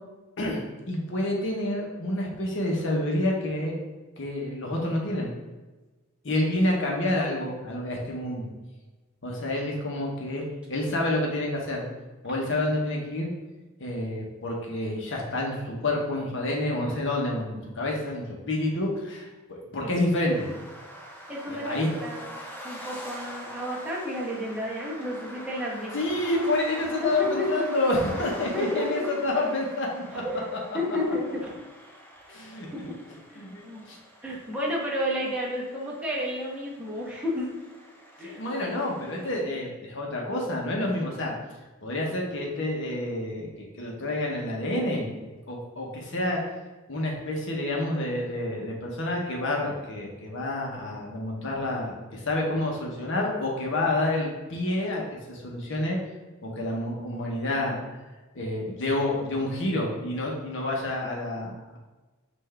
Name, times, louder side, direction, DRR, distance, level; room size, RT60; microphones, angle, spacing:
voice 1, 0.4-3.7 4.2-5.3 6.2-8.5 9.2-10.4 10.7-11.9 12.2-13.3 13.8-20.5 21.5-21.9 25.9-30.0 32.3-32.9 33.4-34.0 38.2-41.3 41.8-45.2 45.5-46.4 46.9-56.0 56.4-57.8 58.3-61.8, left 1 dB, 60° left, -1 dB, 1.0 m, -28 dB
sound 1, 20.3-39.4, equal, 10° left, 0.5 m, -44 dB
voice 2, 21.3-22.3 22.6-25.9 27.0-27.6 28.1-29.1 30.1-31.5 32.3-32.4 32.7-32.8 33.3-33.8 34.2-37.5 38.2-38.4, left 1 dB, 5° right, -6 dB, 1.0 m, -31 dB
5.7 x 2.6 x 3.3 m, 1.2 s
head